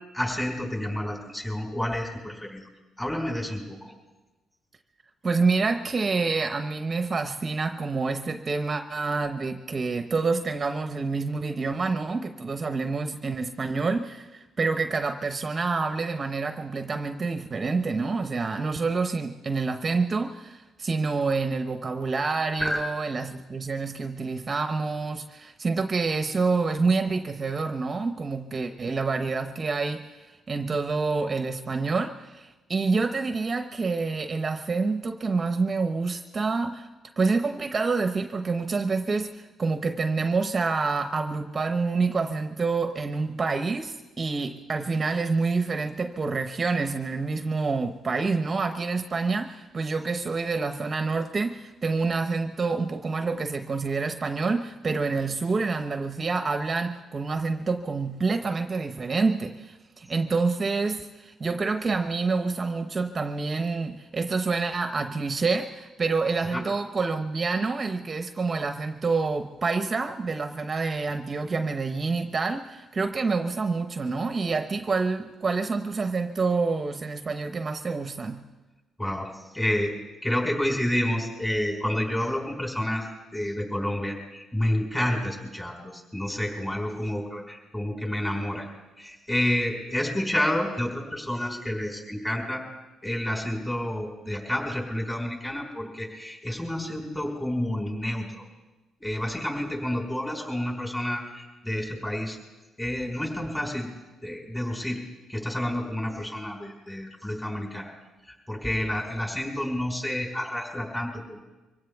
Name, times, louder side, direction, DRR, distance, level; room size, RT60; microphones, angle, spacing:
voice 1, 0.1-2.7 3.0-3.9 22.6-22.8 66.4-66.6 79.0-80.0 80.2-83.1 83.3-88.7 89.0-92.6 93.0-98.4 99.0-102.4 102.8-103.9 104.2-105.0 105.3-107.9 108.3-111.4, left 1 dB, 15° left, 0 dB, 4.8 m, -29 dB
voice 2, 5.2-36.9 37.2-78.4, right 4 dB, 35° right, 8 dB, 0.8 m, -27 dB
24.0 x 17.0 x 3.5 m, 1.2 s
cardioid pair, 90°, 0 cm